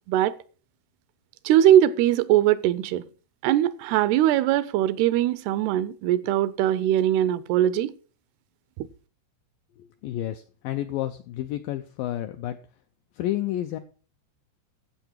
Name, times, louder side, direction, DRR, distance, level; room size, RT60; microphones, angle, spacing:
voice 1, 1.5-3.1 3.4-7.9, right 12 dB, 80° right, 2.6 m, -21 dB
voice 2, 9.8-12.6 13.1-13.8, left 13 dB, 85° left, 2.0 m, -30 dB
13.0 x 8.1 x 4.6 m
omnidirectional pair, 4.7 m